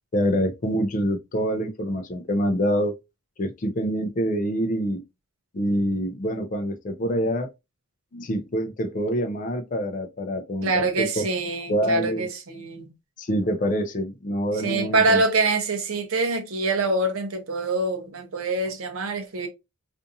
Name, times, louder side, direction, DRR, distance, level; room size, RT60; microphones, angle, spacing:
voice 1, 0.1-2.9 3.4-5.0 5.5-7.5 8.1-11.2 11.7-12.3 13.2-15.2, equal, 35° left, 0.4 m, -26 dB
voice 2, 10.6-12.9 14.5-19.5, right 3 dB, 65° right, 0.6 m, -25 dB
2.6 x 2.4 x 2.5 m
head